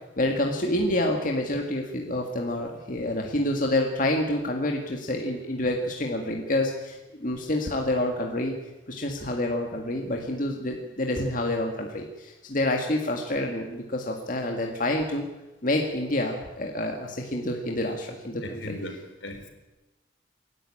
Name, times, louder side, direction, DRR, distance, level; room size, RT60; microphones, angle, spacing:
voice 1, 0.2-8.5 8.9-15.3 15.6-18.8, left 1 dB, 45° left, 2 dB, 2.0 m, -28 dB
voice 2, 18.4-19.5, left 1 dB, 75° left, 5 dB, 4.0 m, -37 dB
27.5 x 11.5 x 8.8 m, 1.1 s
head